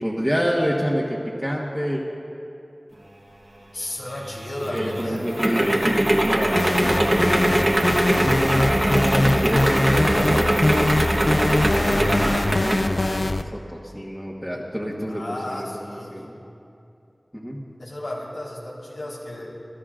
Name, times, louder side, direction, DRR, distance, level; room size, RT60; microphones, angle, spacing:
voice 1, 0.0-2.0 4.7-7.6 8.2-16.3 17.3-17.6, equal, ahead, -5 dB, 1.4 m, -28 dB
voice 2, 3.7-5.3 15.1-16.2 17.8-19.5, left 1 dB, 85° left, -6 dB, 3.7 m, -34 dB
sound 1, 4.1-12.9, right 1 dB, 45° right, 1.2 m, -22 dB
sound 2, 6.6-13.4, left 2 dB, 50° left, 0.4 m, -22 dB
24.0 x 15.5 x 2.5 m, 2.7 s
wide cardioid pair, 55°, 0 cm